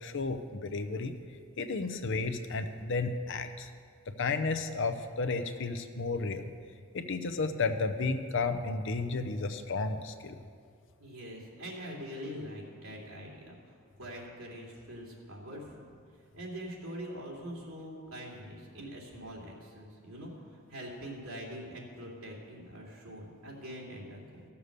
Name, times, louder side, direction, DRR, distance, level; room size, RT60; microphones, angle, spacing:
voice 1, 0.0-1.2 1.6-3.7 4.2-6.5 6.9-10.4, left 3 dB, 60° left, 8 dB, 0.7 m, -32 dB
voice 2, 11.0-15.9 16.3-24.4, equal, 85° right, -3 dB, 2.8 m, -44 dB
15.0 x 7.0 x 6.6 m, 2.2 s
head